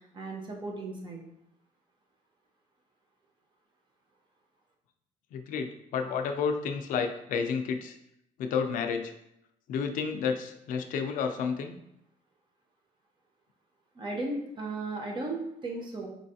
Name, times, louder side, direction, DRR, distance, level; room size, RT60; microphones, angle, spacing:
voice 1, 0.1-1.2 14.0-16.1, right 2 dB, 35° right, -1 dB, 0.9 m, -35 dB
voice 2, 5.3-8.0 8.4-9.1 9.7-11.8, left 6 dB, 80° left, 6 dB, 0.5 m, -31 dB
5.2 x 3.1 x 2.8 m, 0.80 s
cardioid pair, 140°, 13 cm